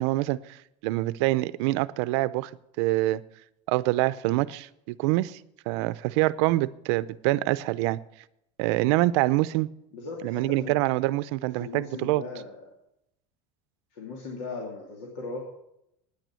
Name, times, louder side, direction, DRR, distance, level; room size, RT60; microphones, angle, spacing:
voice 1, 0.0-2.5 2.8-3.2 3.7-5.4 5.7-8.0 8.6-9.7 10.2-12.2, right 18 dB, 65° right, 16 dB, 0.6 m, -25 dB
voice 2, 9.9-10.8 11.6-12.6 13.9-15.4, left 3 dB, 80° left, 0 dB, 2.6 m, -38 dB
9.8 x 9.2 x 8.3 m, 0.81 s
cardioid pair, 165°, 15 cm